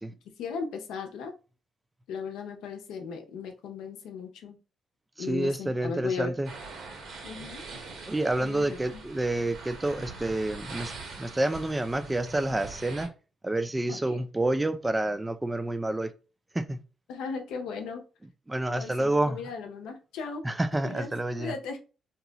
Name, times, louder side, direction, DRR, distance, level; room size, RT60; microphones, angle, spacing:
voice 1, 0.3-1.3 2.1-4.6 5.2-6.3 7.2-7.6 8.4-9.0 13.9-14.2 17.1-18.0 18.7-20.4 20.8-21.1 21.4-21.8, left 5 dB, 85° left, 0.7 m, -37 dB
voice 2, 5.2-6.5 8.1-13.1 13.4-16.1 16.5-16.8 18.5-19.4 20.4-21.5, right 1 dB, 15° right, 0.4 m, -29 dB
sound 1, 6.4-13.1, right 3 dB, 70° right, 1.1 m, -43 dB
2.9 x 2.3 x 3.8 m
cardioid pair, 80°, 0 cm